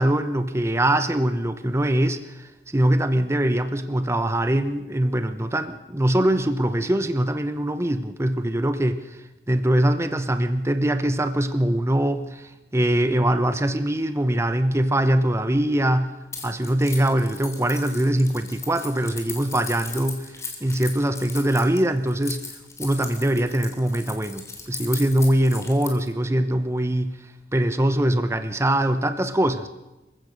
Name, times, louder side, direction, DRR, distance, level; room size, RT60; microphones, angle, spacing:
voice 1, 0.0-9.0 9.5-16.1 16.4-20.3 20.6-22.4 22.8-27.2 27.5-29.7, right 1 dB, 15° right, 10 dB, 0.9 m, -22 dB
Keys jangling, 16.3-26.1, left 4 dB, 15° left, 3.2 m, -37 dB
26.5 x 15.5 x 6.7 m, 1.0 s
head